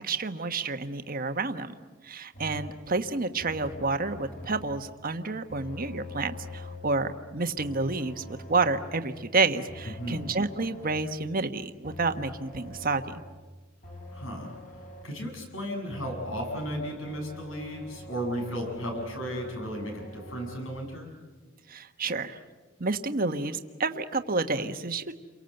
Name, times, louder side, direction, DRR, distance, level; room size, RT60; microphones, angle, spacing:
voice 1, 0.0-1.7 2.0-13.1 21.7-22.4 22.8-25.1, right 3 dB, 45° right, 8 dB, 1.3 m, -29 dB
sound 1, 2.3-2.9 3.4-4.9 5.5-7.0 7.6-9.0 9.7-11.1 11.8-13.4 13.8-15.2 15.9-20.6, left 1 dB, 40° left, 5.9 m, -44 dB
voice 2, 14.1-21.1, equal, 70° left, 2 dB, 7.5 m, -35 dB
29.5 x 23.5 x 8.0 m, 1.3 s
head